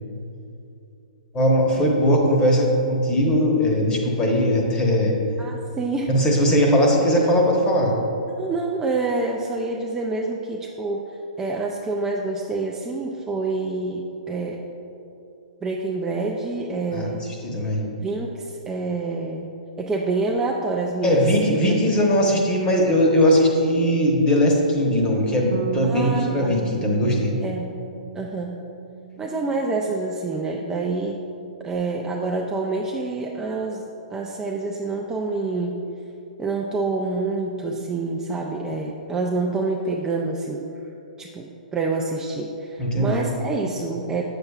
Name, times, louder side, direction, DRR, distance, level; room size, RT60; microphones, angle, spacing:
voice 1, 1.3-5.2 6.1-7.9 16.9-17.1 17.4-17.8 21.0-27.3 42.8-43.2, equal, 20° left, -1 dB, 1.0 m, -19 dB
voice 2, 5.4-6.1 8.3-11.0 11.4-14.6 15.6-17.3 18.0-19.4 19.8-21.3 21.6-21.7 25.8-26.5 27.4-27.7 28.1-28.6 29.2-31.2 31.6-35.8 36.4-40.6 41.2-44.2, right 3 dB, 15° right, -1 dB, 0.4 m, -27 dB
Bass guitar, 25.5-30.2 30.5-31.8, right 6 dB, 80° right, 0.4 m, -36 dB
7.6 x 6.8 x 2.4 m, 2.7 s
hypercardioid pair, 135°, 5 cm